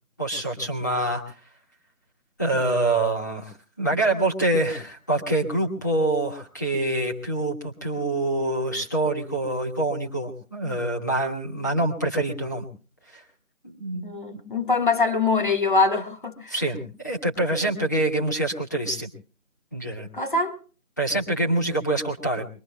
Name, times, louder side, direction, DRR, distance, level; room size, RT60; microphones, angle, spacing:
voice 1, 0.2-1.2 2.4-12.6 13.1-13.2 13.6-14.0 14.3-14.4 16.5-19.1 19.7-20.1 21.0-22.5, right 2 dB, 15° left, 1.5 m, -25 dB
voice 2, 14.0-16.5 20.1-20.6, left 4 dB, 35° left, 1.7 m, -23 dB
24.0 x 21.5 x 2.3 m
figure-of-eight pair, 170°, 42 cm